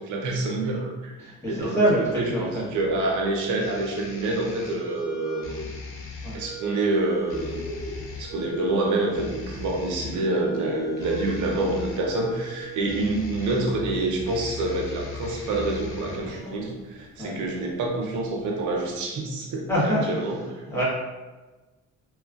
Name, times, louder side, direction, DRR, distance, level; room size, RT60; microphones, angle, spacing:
voice 1, 0.0-1.8 2.1-5.6 6.3-7.6 8.2-20.4, right 2 dB, 80° right, 0 dB, 0.7 m, -27 dB
voice 2, 1.2-3.1 6.2-6.4 17.2-17.4 19.7-20.0 20.7-20.8, equal, 10° left, -8 dB, 1.1 m, -25 dB
sound 1, 2.0-16.5, left 2 dB, 45° left, 0.6 m, -39 dB
Bird, 6.8-19.0, left 2 dB, 85° left, 1.0 m, -43 dB
2.9 x 2.4 x 2.3 m, 1.2 s
cardioid pair, 90°, 30 cm